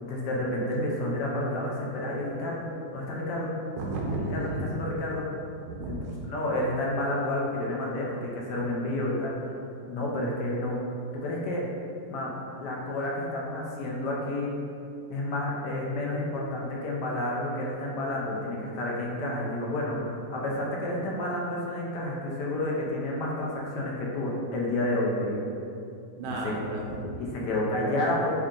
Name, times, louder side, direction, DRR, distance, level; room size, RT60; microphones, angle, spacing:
voice 1, 0.0-2.6 2.9-3.5 4.1-5.3 5.8-6.0 6.2-9.5 9.9-10.8 11.1-11.6 12.1-14.6 15.1-25.5 26.4-26.5 27.2-28.3, left 1 dB, 70° left, -3 dB, 1.1 m, -30 dB
voice 2, 3.8-4.6 5.7-5.9 26.2-27.2, right 2 dB, 80° right, -2 dB, 1.3 m, -33 dB
3.5 x 2.8 x 3.6 m, 2.6 s
omnidirectional pair, 2.0 m